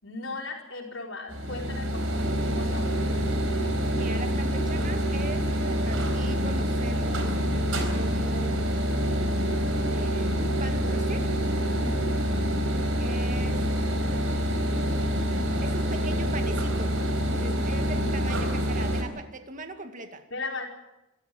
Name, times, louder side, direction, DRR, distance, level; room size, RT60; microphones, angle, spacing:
voice 1, 0.0-2.9 11.6-12.2 20.3-20.7, left 3 dB, 70° left, -1 dB, 4.8 m, -37 dB
sound 1, 1.3-19.0, equal, 75° right, 4.3 m, -26 dB
voice 2, 3.9-7.4 7.9-8.6 9.9-11.3 13.0-13.7 15.6-17.0 17.3-20.2, right 2 dB, 40° right, 6 dB, 2.1 m, -40 dB
26.5 x 14.0 x 7.8 m, 0.98 s
head